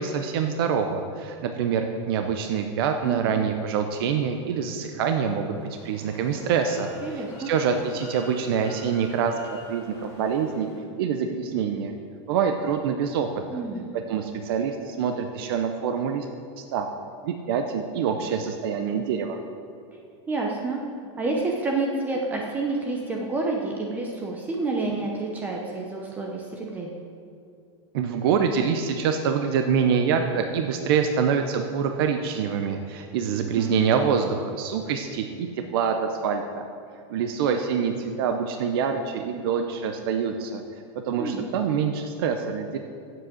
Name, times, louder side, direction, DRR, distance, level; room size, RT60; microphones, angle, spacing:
voice 1, 0.0-10.7 11.0-11.9 12.3-13.6 13.9-16.3 16.6-16.9 17.2-19.4 27.9-36.7 37.1-40.6 41.1-42.8, right 6 dB, 50° right, 5 dB, 0.7 m, -26 dB
voice 2, 3.0-3.4 7.0-7.5 13.5-13.9 20.3-20.8 21.2-26.9 33.6-33.7 41.2-41.4, right 3 dB, 10° right, 0 dB, 0.7 m, -29 dB
sound 1, 5.5-10.8, left 1 dB, 40° left, 2.3 m, -47 dB
8.7 x 7.7 x 7.8 m, 2.3 s
supercardioid pair, 180°, 15 cm